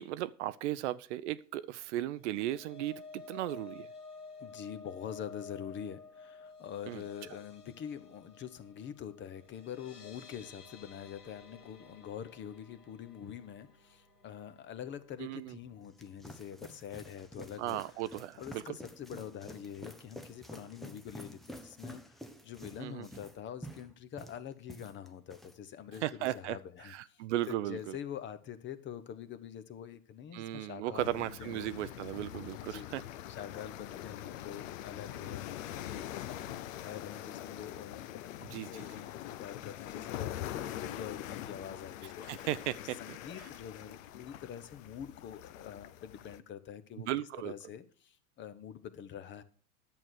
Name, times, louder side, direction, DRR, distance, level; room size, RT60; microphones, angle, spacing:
voice 1, 0.0-3.9 6.9-7.0 15.2-15.6 17.6-18.6 22.8-23.1 26.0-28.0 30.3-33.0 38.5-38.9 42.2-43.0 43.4-43.5 47.1-47.5, right 14 dB, 50° right, 0.6 m, -36 dB
sound 1, 2.1-16.3 16.7-16.9 17.2-17.3, left 4 dB, 85° left, 3.3 m, -53 dB
voice 2, 4.4-17.8 18.4-31.7 32.7-32.9 33.3-42.5 43.0-47.1 47.4-49.4, left 9 dB, 25° left, 0.9 m, -45 dB
sound 2, 15.6-25.6 25.9-26.3, equal, ahead, 0.5 m, -50 dB
sound 3, 31.0-46.4, left 12 dB, 60° left, 0.9 m, -44 dB
10.5 x 7.6 x 6.4 m
hypercardioid pair, 110°, 46 cm